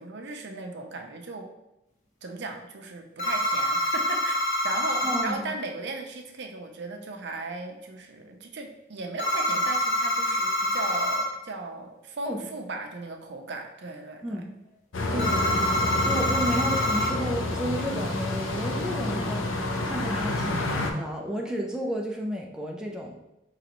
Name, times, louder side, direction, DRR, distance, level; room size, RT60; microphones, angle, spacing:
voice 1, 0.0-1.5 2.2-4.4 4.6-14.4 15.1-15.5 16.0-16.3, right 3 dB, 60° right, 4 dB, 0.6 m, -37 dB
sound 1, 3.2-5.3 9.2-11.3 15.2-17.1, left 1 dB, 40° left, 0.9 m, -26 dB
voice 2, 5.0-5.6 12.2-12.4 14.2-14.5 15.1-19.4 19.8-23.2, equal, 5° right, -1 dB, 0.4 m, -32 dB
sound 2, 14.9-20.9, left 2 dB, 75° left, 0.6 m, -29 dB
5.0 x 3.1 x 3.0 m, 0.92 s
head